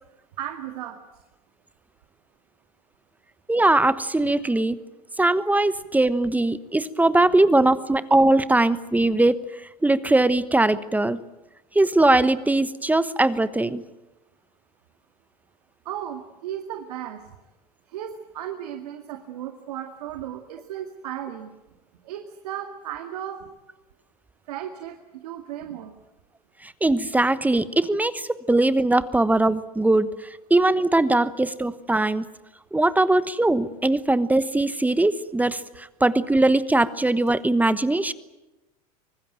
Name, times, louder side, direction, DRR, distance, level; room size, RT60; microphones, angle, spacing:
voice 1, 0.4-1.0 7.5-7.6 15.9-17.2 17.9-21.5 22.0-23.4 24.5-25.0 25.2-25.9, right 10 dB, 75° right, 6 dB, 2.1 m, -35 dB
voice 2, 3.5-4.8 5.2-9.4 9.8-11.2 11.7-13.8 26.6-30.1 30.5-32.2 32.7-38.1, right 2 dB, 10° right, 15 dB, 1.1 m, -20 dB
25.0 x 20.0 x 9.0 m, 1.0 s
hypercardioid pair, 95°, 20 cm